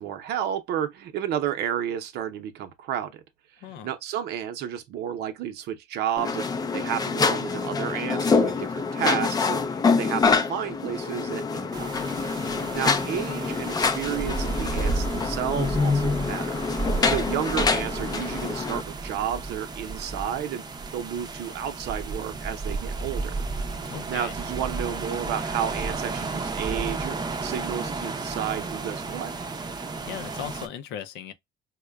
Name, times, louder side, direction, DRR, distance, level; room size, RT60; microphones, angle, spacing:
voice 1, 0.0-3.2 3.8-11.9 12.7-20.6 20.9-23.4 24.1-29.3, right 10 dB, 75° right, 0.6 m, -31 dB
voice 2, 3.6-3.9 12.4-12.8 23.9-24.3 30.0-31.3, left 9 dB, 85° left, 0.6 m, -38 dB
sound 1, 6.2-18.8, left 4 dB, 25° left, 0.4 m, -26 dB
sound 2, 11.7-30.7, right 3 dB, 25° right, 0.5 m, -33 dB
4.6 x 2.1 x 2.2 m
cardioid pair, 110°, 17 cm